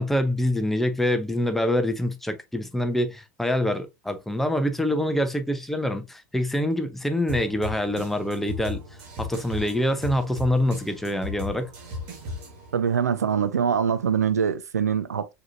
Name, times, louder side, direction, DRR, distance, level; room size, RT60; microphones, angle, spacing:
voice 1, 0.0-8.8 9.2-11.7, left 1 dB, 5° left, 0.6 m, -25 dB
sound 1, 7.3-12.8, left 2 dB, 45° right, 1.6 m, -36 dB
voice 2, 12.7-15.3, right 7 dB, 75° right, 0.4 m, -24 dB
4.8 x 2.9 x 2.5 m
figure-of-eight pair, 80°, 9 cm